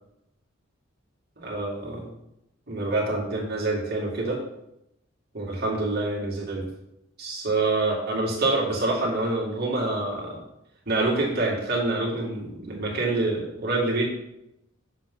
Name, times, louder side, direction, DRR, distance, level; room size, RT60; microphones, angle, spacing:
voice 1, 1.4-2.1 2.7-4.4 5.3-6.7 7.2-10.4 10.9-14.1, right 2 dB, 55° right, -3 dB, 2.3 m, -26 dB
7.1 x 6.3 x 3.8 m, 0.83 s
head